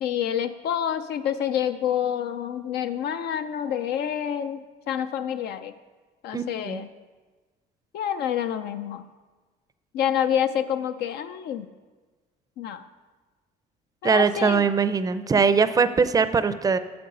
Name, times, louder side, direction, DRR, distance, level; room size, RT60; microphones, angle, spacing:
voice 1, 0.0-5.7 6.2-6.9 7.9-9.0 9.9-11.7 12.6-12.8 14.0-14.6, left 9 dB, 75° left, 9 dB, 0.5 m, -27 dB
voice 2, 6.3-6.8 14.0-16.8, right 5 dB, 20° right, 12 dB, 0.5 m, -21 dB
8.7 x 6.9 x 5.4 m, 1.3 s
cardioid pair, 110°, 17 cm